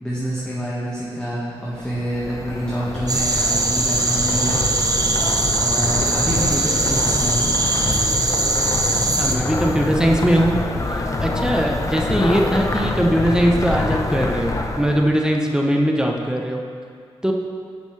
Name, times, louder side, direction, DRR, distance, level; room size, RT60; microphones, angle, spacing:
voice 1, 0.0-4.6 5.6-7.5, right 1 dB, 10° left, -7 dB, 1.5 m, -27 dB
sound 1, 1.7-15.2, left 2 dB, 30° left, 0.7 m, -25 dB
sound 2, 3.1-9.4, right 2 dB, 35° right, 0.9 m, -21 dB
voice 2, 9.2-10.5 10.9-16.6 17.2-17.3, equal, 5° right, 0 dB, 0.7 m, -20 dB
9.8 x 7.1 x 3.2 m, 2.2 s
cardioid pair, 80°, 11 cm